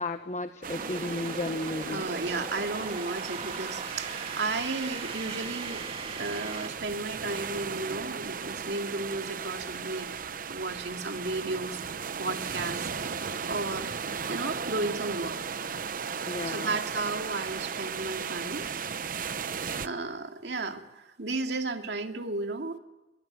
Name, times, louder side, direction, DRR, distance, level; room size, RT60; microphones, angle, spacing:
voice 1, 0.0-2.1 16.3-16.8, left 2 dB, 40° left, 8 dB, 1.2 m, -33 dB
sound 1, 0.6-19.9, right 6 dB, 50° right, 0.8 m, -36 dB
sound 2, 0.7-6.7, right 4 dB, 35° right, 2.4 m, -39 dB
voice 2, 1.9-5.8 6.2-10.1 10.5-11.8 12.2-14.0 14.3-15.4 16.4-18.7 19.8-22.8, right 3 dB, 75° right, 4 dB, 2.4 m, -34 dB
23.5 x 22.5 x 9.3 m, 1.0 s
head